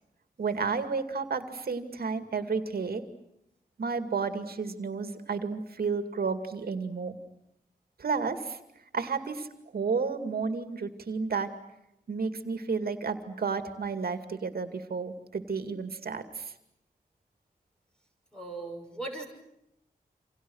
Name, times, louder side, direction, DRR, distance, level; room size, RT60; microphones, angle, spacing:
voice 1, 0.4-3.0 3.8-7.2 8.0-8.6 8.9-9.5 9.7-11.5 12.1-16.5, right 5 dB, 85° right, 8 dB, 2.4 m, -31 dB
voice 2, 18.3-19.3, right 2 dB, 5° left, 2 dB, 6.1 m, -38 dB
29.0 x 27.0 x 6.4 m, 0.80 s
wide cardioid pair, 95°, 15 cm